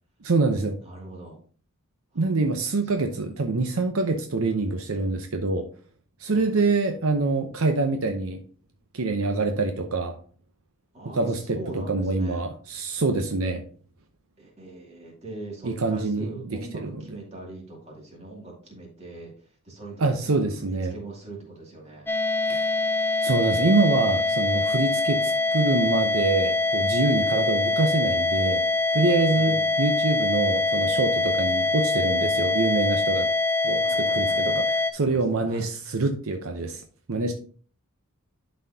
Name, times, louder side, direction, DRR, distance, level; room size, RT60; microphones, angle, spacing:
voice 1, 0.2-0.8 2.2-5.7 6.2-8.4 8.9-10.1 11.1-13.6 15.6-17.0 20.0-20.9 22.5-22.7 23.2-28.6 28.9-33.3 33.6-36.8 37.1-37.3, right 3 dB, 75° right, 5 dB, 0.7 m, -25 dB
voice 2, 0.8-1.4 2.1-2.3 2.9-3.1 6.3-6.5 10.9-12.4 14.4-19.3 19.6-22.1 29.3-29.7 31.3-31.5 33.8-34.6 35.0-35.7, right 2 dB, 30° right, -2 dB, 2.4 m, -41 dB
sound 1, 22.1-34.9, left 3 dB, 10° left, 0.4 m, -24 dB
11.0 x 4.2 x 2.7 m, 0.44 s
head